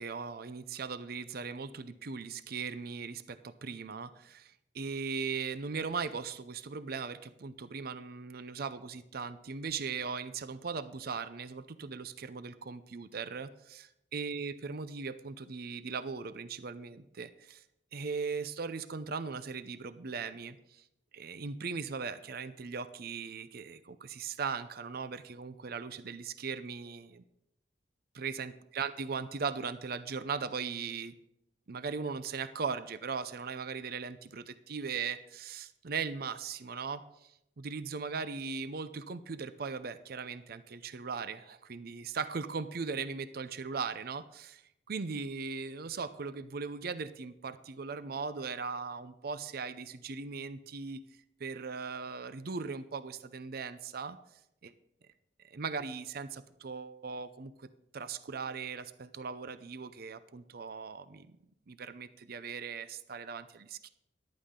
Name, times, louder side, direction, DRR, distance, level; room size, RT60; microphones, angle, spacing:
voice 1, 0.0-13.9 14.1-17.6 17.9-20.8 21.1-27.2 28.1-31.1 31.7-44.6 44.9-51.0 51.4-54.2 54.6-54.7 55.4-57.7 57.9-61.3 61.7-63.9, right 5 dB, 60° right, 13 dB, 0.6 m, -39 dB
14.0 x 11.5 x 3.8 m, 0.82 s
head